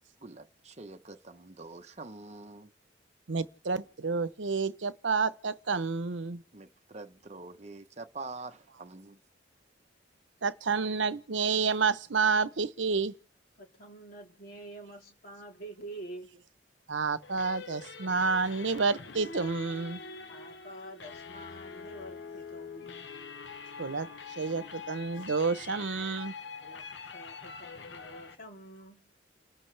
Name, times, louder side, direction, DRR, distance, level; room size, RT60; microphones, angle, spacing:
voice 1, 0.2-2.7 6.5-9.2, right 3 dB, 35° right, 0.9 m, -45 dB
voice 2, 3.3-6.4 10.4-13.1 16.9-20.0 23.8-24.1 24.4-26.3, right 4 dB, 85° right, 0.9 m, -29 dB
voice 3, 13.6-16.3 20.3-23.1 26.6-29.0, right 1 dB, 50° left, 3.4 m, -47 dB
sound 1, 17.2-28.3, left 5 dB, 70° left, 1.1 m, -44 dB
29.5 x 13.5 x 3.4 m
head